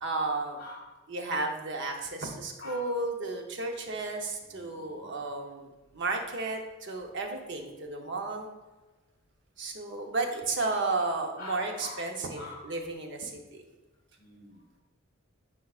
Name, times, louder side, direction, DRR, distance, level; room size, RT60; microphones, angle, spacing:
voice 1, 0.0-0.6 1.1-8.5 9.6-13.3, right 3 dB, 55° right, 3 dB, 0.8 m, -33 dB
voice 2, 0.6-1.0 2.6-2.9 4.4-5.2 11.4-12.1 12.4-12.7 14.2-14.6, left 2 dB, 45° left, -3 dB, 2.1 m, -45 dB
9.4 x 4.6 x 2.4 m, 1.2 s
head